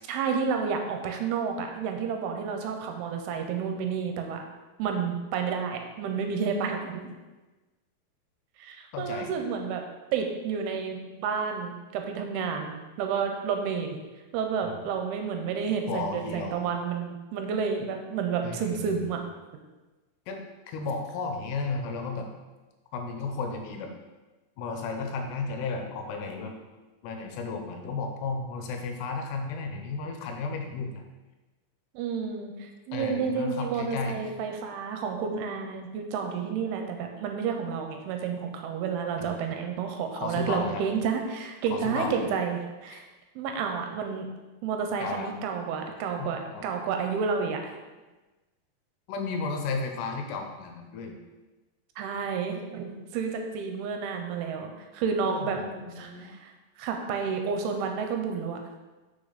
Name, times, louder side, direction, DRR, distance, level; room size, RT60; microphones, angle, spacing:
voice 1, 0.1-4.4 4.8-7.0 8.6-9.8 10.1-14.0 14.3-19.2 31.9-43.1 43.4-44.3 44.6-47.7 52.0-55.6 56.0-56.5 56.8-58.6, right 6 dB, 80° right, 4 dB, 2.6 m, -30 dB
voice 2, 8.9-9.3 14.6-14.7 15.9-16.7 18.4-19.1 20.3-22.3 22.9-23.9 24.6-26.5 27.0-31.0 32.9-34.2 39.2-39.4 40.2-40.8 41.7-42.2 42.9-43.0 45.0-45.3 46.2-46.7 49.1-51.2 55.3-56.3, left 4 dB, 85° left, 4 dB, 2.9 m, -34 dB
6.6 x 6.2 x 4.0 m, 1.2 s
omnidirectional pair, 4.8 m